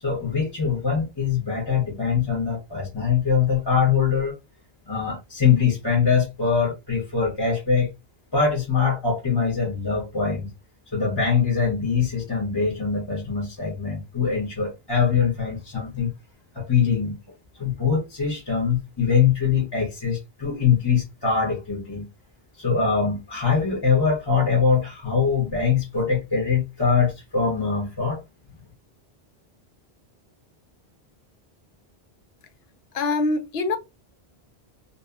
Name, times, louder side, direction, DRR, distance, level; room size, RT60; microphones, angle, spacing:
voice 1, 0.0-4.4 4.9-7.9 8.3-10.5 10.9-16.1 16.5-17.2 17.6-22.1 22.6-28.2, left 6 dB, 25° left, 0.7 m, -23 dB
voice 2, 32.9-33.8, left 3 dB, 75° left, 0.8 m, -24 dB
2.6 x 2.4 x 2.3 m
omnidirectional pair, 1.1 m